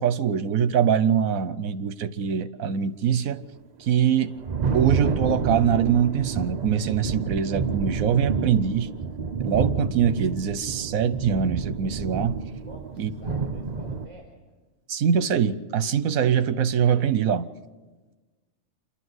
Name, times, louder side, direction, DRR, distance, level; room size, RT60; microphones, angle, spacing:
voice 1, 0.0-3.4 3.8-4.4 4.7-8.9 9.4-12.4 13.0-13.1 14.9-17.5, right 8 dB, 80° right, 1.2 m, -23 dB
Thunder, 3.9-14.1, right 5 dB, 40° right, 0.7 m, -29 dB
voice 2, 12.6-14.4, right 1 dB, 20° right, 3.9 m, -47 dB
27.5 x 12.0 x 7.9 m
omnidirectional pair, 1.4 m